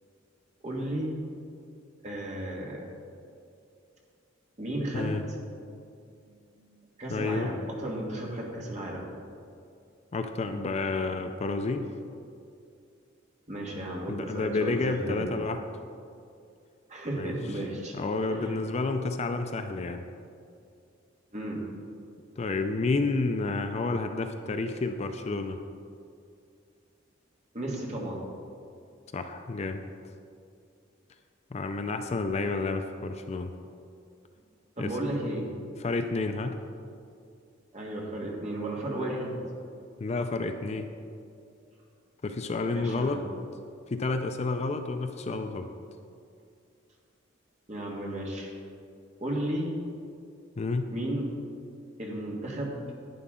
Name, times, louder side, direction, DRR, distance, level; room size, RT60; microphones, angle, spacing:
voice 1, 0.6-1.2 2.0-2.8 4.6-5.2 6.3-6.4 7.0-9.0 13.5-15.3 16.9-17.9 18.3-18.5 21.3-21.6 27.5-28.2 34.8-35.5 37.7-39.4 42.7-43.2 47.7-48.5 49.2-49.8 50.9-51.3 52.0-52.8, right 1 dB, 35° right, -2 dB, 1.7 m, -34 dB
voice 2, 7.1-7.5 10.1-11.9 14.1-15.6 17.2-17.3 17.9-20.0 22.4-25.6 29.1-29.8 31.5-33.5 34.8-34.9 35.8-36.6 40.0-40.9 42.2-43.2 43.9-45.7 50.6-50.9, left 3 dB, 35° left, 7 dB, 0.4 m, -30 dB
11.0 x 9.3 x 3.7 m, 2.4 s
head